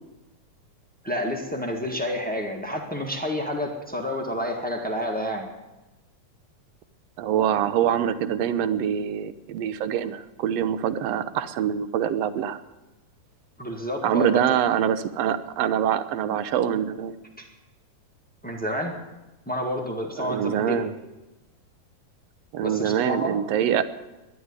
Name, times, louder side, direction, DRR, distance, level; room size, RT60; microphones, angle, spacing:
voice 1, 1.0-5.5 13.6-14.4 17.4-17.5 18.4-19.0 19.5-20.9 22.6-23.4, left 1 dB, 10° left, 1 dB, 0.4 m, -29 dB
voice 2, 7.2-12.6 14.0-17.1 20.1-20.9 22.5-23.9, right 9 dB, 70° right, 13 dB, 1.6 m, -24 dB
12.0 x 11.0 x 9.6 m, 1.1 s
omnidirectional pair, 3.4 m